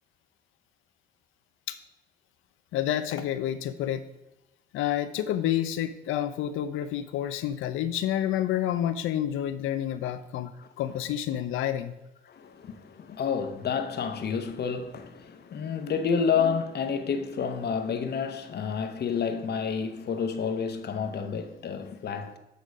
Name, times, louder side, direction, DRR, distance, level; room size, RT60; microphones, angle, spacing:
voice 1, 2.7-4.0 4.7-10.5 10.8-11.9, left 11 dB, 90° left, 0.6 m, -29 dB
voice 2, 12.3-22.4, left 6 dB, 55° left, 1.0 m, -29 dB
8.5 x 3.9 x 4.7 m
cardioid pair, 90°, 20 cm